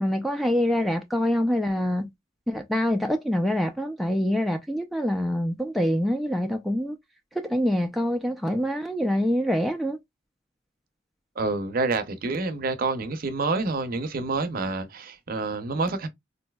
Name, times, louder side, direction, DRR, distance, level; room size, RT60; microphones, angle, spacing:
voice 1, 0.0-2.1 2.5-7.0 7.4-10.0, equal, ahead, 0.3 m, -25 dB
voice 2, 11.4-16.1, right 3 dB, 50° right, 0.6 m, -28 dB
3.9 x 2.6 x 2.2 m
head